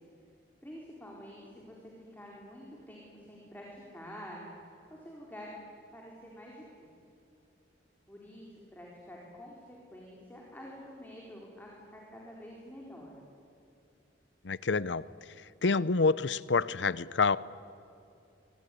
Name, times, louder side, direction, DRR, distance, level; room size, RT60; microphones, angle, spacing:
voice 1, 0.6-4.6 4.9-5.5 5.9-6.7 8.1-13.1, equal, 10° left, -3 dB, 4.2 m, -48 dB
voice 2, 14.4-15.0 15.6-17.4, left 4 dB, 75° left, 18 dB, 0.7 m, -27 dB
25.0 x 23.5 x 9.9 m, 2.6 s
head